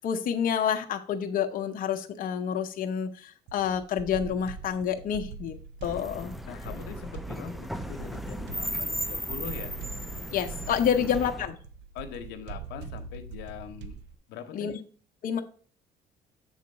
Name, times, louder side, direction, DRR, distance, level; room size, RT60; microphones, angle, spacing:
voice 1, 0.0-5.6 5.8-6.3 10.3-11.5 14.5-14.8 15.2-15.4, left 8 dB, 55° left, 5 dB, 0.7 m, -28 dB
sound 1, 3.5-14.1, right 6 dB, 80° right, 0.6 m, -43 dB
sound 2, 5.8-11.5, equal, ahead, 0.4 m, -36 dB
voice 2, 6.5-9.7 11.0-11.3 11.9-14.0 14.3-14.8, left 7 dB, 90° left, 7 dB, 0.8 m, -42 dB
7.2 x 3.8 x 5.3 m, 0.44 s
cardioid pair, 110°, 17 cm